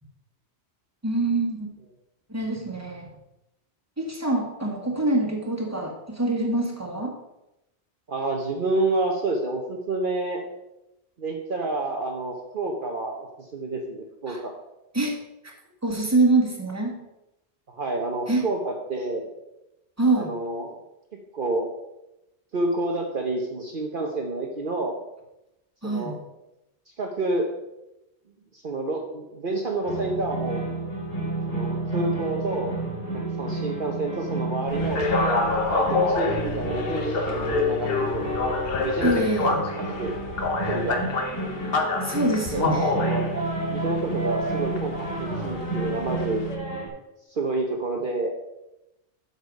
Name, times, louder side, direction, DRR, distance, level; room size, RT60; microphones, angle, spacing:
voice 1, 1.0-1.7 2.3-3.1 4.0-7.1 14.3-14.4 14.9-15.1 15.8-17.0 18.3-18.4 20.0-20.3 25.8-26.2 39.0-39.6 42.0-43.0, right 2 dB, 15° right, 0 dB, 1.8 m, -25 dB
voice 2, 8.1-10.4 11.2-14.5 17.7-19.3 20.1-20.8 21.3-21.7 22.5-24.9 25.8-26.2 27.0-27.5 28.5-30.6 31.5-32.7 33.1-35.0 35.7-38.3 38.7-39.2 39.8-40.1 40.7-41.0 42.5-43.2 43.7-46.4 47.3-48.4, right 2 dB, 50° right, 1 dB, 1.1 m, -29 dB
sound 1, 29.8-46.9, right 2 dB, 35° left, 2.6 m, -30 dB
sound 2, 34.7-46.5, left 3 dB, 60° left, 1.3 m, -28 dB
8.2 x 6.8 x 5.3 m, 0.90 s
omnidirectional pair, 1.2 m